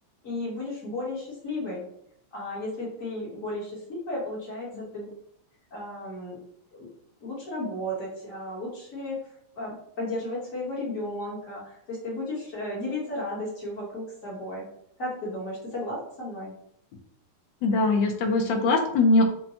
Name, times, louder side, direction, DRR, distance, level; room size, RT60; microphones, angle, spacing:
voice 1, 0.2-1.8 2.3-5.1 5.7-6.4 6.7-6.9 7.2-9.2 9.5-14.7 15.0-16.5, left 1 dB, 45° left, -5 dB, 1.3 m, -34 dB
voice 2, 17.6-19.3, left 2 dB, 75° left, 5 dB, 1.3 m, -22 dB
5.5 x 2.1 x 2.7 m, 0.71 s
omnidirectional pair, 2.3 m